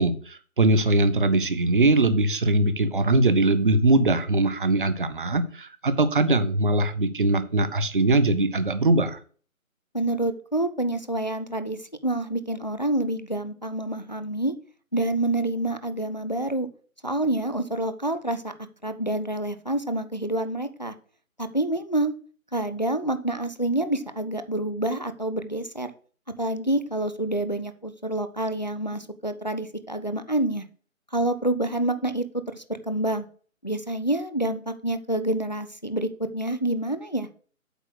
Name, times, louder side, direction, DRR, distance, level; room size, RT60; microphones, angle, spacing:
voice 1, 0.0-9.2, right 2 dB, 40° right, 11 dB, 0.7 m, -21 dB
voice 2, 9.9-11.8 12.0-14.5 14.9-16.7 17.0-18.5 18.8-20.9 21.4-22.2 22.5-25.9 26.4-30.7 31.1-32.2 32.5-33.3 33.6-37.3, right 1 dB, 35° left, 11 dB, 0.4 m, -27 dB
8.0 x 4.2 x 6.4 m, 0.42 s
figure-of-eight pair, 165°, 42 cm